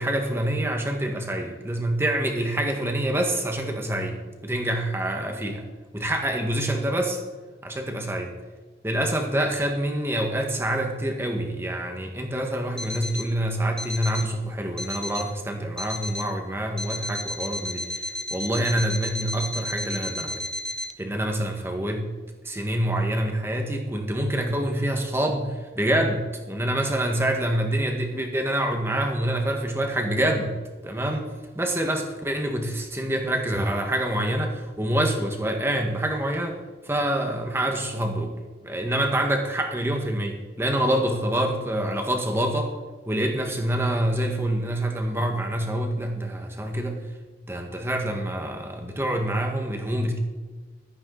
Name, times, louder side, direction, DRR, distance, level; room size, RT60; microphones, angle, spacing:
voice 1, 0.0-4.2 4.4-5.6 5.9-7.2 7.6-8.3 8.8-20.5 21.0-22.1 22.4-30.6 30.8-36.6 36.8-38.3 38.6-42.7 43.1-47.0 47.5-50.2, right 1 dB, 15° right, 3 dB, 1.7 m, -26 dB
Alarm, 12.8-13.3 13.8-14.3 14.8-15.3 15.8-16.3 16.8-20.9, left 1 dB, 5° left, 0.6 m, -33 dB
15.0 x 13.5 x 4.1 m, 1.4 s
head